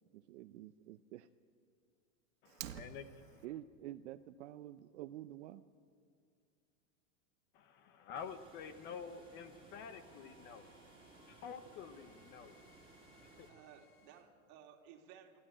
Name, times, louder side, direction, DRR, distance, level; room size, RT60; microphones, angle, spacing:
voice 1, 0.1-1.3 3.4-5.6, right 13 dB, 60° right, 10 dB, 0.7 m, -49 dB
voice 2, 2.4-3.4 7.5-10.7 11.3-12.6 13.2-13.5, left 6 dB, 25° left, 11 dB, 0.7 m, -49 dB
Fire, 2.4-3.4, right 10 dB, 75° right, 1.7 m, -48 dB
sound 1, 8.1-13.5, right 4 dB, 15° right, 3.1 m, -61 dB
sound 2, 8.3-14.2, left 2 dB, 50° left, 5.2 m, -66 dB
voice 3, 13.5-15.4, right 9 dB, 40° right, 4 dB, 2.3 m, -58 dB
28.0 x 11.5 x 8.7 m, 2.2 s
supercardioid pair, 155°, 40 cm